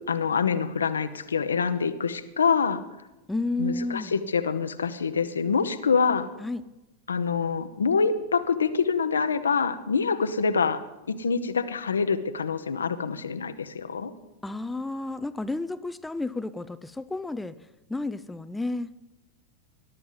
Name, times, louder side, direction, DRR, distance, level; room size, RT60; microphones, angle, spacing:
voice 1, 0.0-2.8 3.6-6.3 7.1-10.8 11.1-14.1, left 5 dB, 70° left, 11 dB, 0.9 m, -26 dB
voice 2, 3.3-4.1 6.4-6.6 14.4-17.5 17.9-18.9, left 2 dB, 5° left, 12 dB, 0.5 m, -31 dB
20.5 x 12.0 x 3.9 m, 0.99 s
figure-of-eight pair, 90°, 0 cm